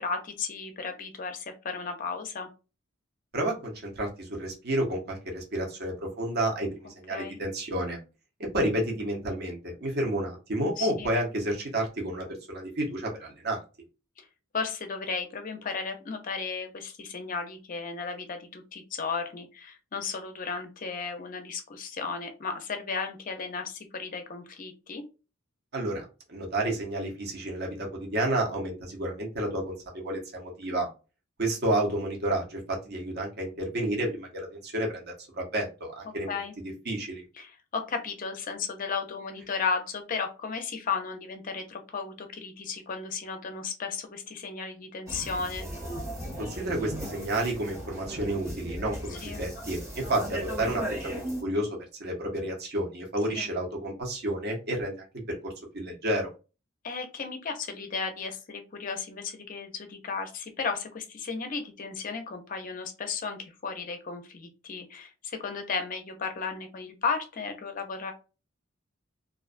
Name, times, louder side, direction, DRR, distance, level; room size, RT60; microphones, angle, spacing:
voice 1, 0.0-2.5 7.1-7.4 10.8-11.2 14.2-14.3 14.5-25.0 36.3-36.5 37.4-45.7 49.1-49.4 53.3-53.5 56.8-68.1, left 5 dB, 40° left, 6 dB, 0.5 m, -34 dB
voice 2, 3.3-8.0 8.4-13.6 25.7-30.9 31.4-36.3 36.6-37.2 46.4-55.1 55.4-56.3, right 1 dB, 50° right, 0 dB, 0.8 m, -31 dB
sound 1, 45.1-51.4, equal, 15° right, 0.8 m, -36 dB
2.4 x 2.2 x 2.4 m, 0.31 s
head